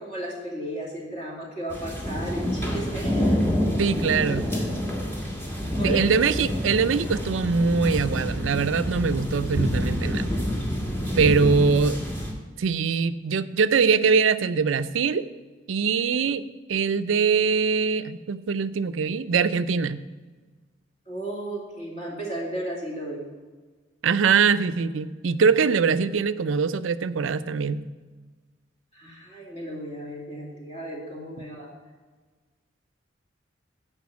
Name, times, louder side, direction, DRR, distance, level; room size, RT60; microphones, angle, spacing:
voice 1, 0.0-3.4 4.5-4.6 5.5-6.0 21.1-23.2 28.9-31.7, right 1 dB, 35° left, -3 dB, 2.8 m, -34 dB
sound 1, 1.7-12.3, equal, 10° left, 1.5 m, -27 dB
voice 2, 3.8-4.5 5.8-10.3 11.2-12.0 12.6-15.2 15.7-16.4 16.7-20.0 24.0-27.8, right 5 dB, 90° right, 13 dB, 0.5 m, -22 dB
10.5 x 5.3 x 7.1 m, 1.4 s
head